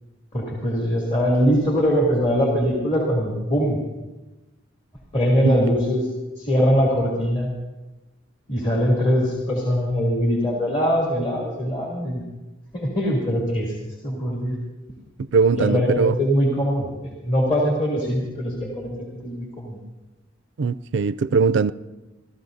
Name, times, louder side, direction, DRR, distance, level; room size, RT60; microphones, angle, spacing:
voice 1, 0.3-3.8 5.1-6.1 6.4-7.5 8.5-12.2 12.7-13.7 14.0-14.6 15.5-19.8, equal, 35° left, 2.9 m, -22 dB
voice 2, 15.2-16.1 20.6-21.7, right 5 dB, 65° right, 0.4 m, -20 dB
29.5 x 14.0 x 2.7 m
head